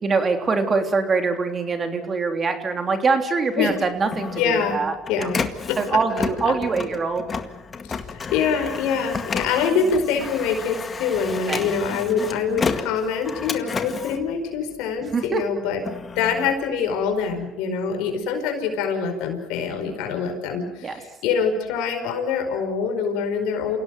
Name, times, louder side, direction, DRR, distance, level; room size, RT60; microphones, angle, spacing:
voice 1, 0.0-5.3 5.8-7.2 11.5-11.7 15.1-15.4 20.8-20.9, right 4 dB, 35° right, 6 dB, 3.4 m, -23 dB
Printer, 3.7-15.1 15.6-17.4, left 5 dB, 35° left, 2.0 m, -31 dB
voice 2, 4.3-4.8 5.1-5.4 5.7-5.8 6.2-6.5 7.9-15.8 16.2-23.8, left 6 dB, 80° left, 6 dB, 5.0 m, -25 dB
28.0 x 17.5 x 7.9 m, 1.0 s
supercardioid pair, 85°, 0 cm